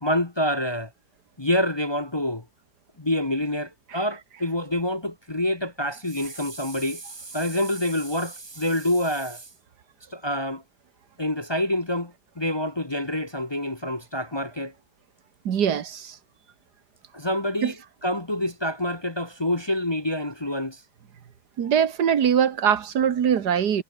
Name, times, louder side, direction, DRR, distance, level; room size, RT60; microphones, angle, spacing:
voice 1, 0.0-0.9 1.4-2.4 3.0-9.5 10.1-10.6 11.2-14.7 17.1-17.8 18.0-20.8, left 1 dB, 20° left, 1.0 m, -27 dB
voice 2, 15.5-16.2 17.6-17.7 21.6-23.8, right 8 dB, 80° right, 1.9 m, -22 dB
omnidirectional pair, 1.7 m